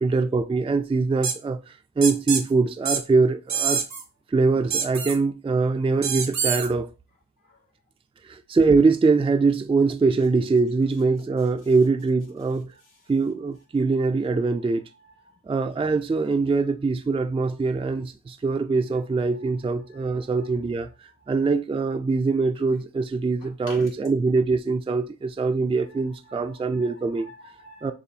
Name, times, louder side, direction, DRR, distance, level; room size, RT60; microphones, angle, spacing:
voice 1, 0.0-3.8 4.3-6.9 8.2-12.7 13.1-14.8 15.5-27.3 27.8-27.9, right 4 dB, 20° right, 0.4 m, -23 dB
sound 1, 1.2-1.4 2.0-2.4 2.9-3.0 3.5-4.0 4.7-5.2 6.0-6.7, right 6 dB, 60° right, 0.7 m, -25 dB
voice 2, 14.5-15.4 18.9-19.0 19.3-19.5 19.9-20.4 21.3-21.4 23.4-23.9 25.9-27.9, left 1 dB, 75° left, 2.0 m, -50 dB
6.7 x 2.5 x 2.8 m
wide cardioid pair, 80°, 32 cm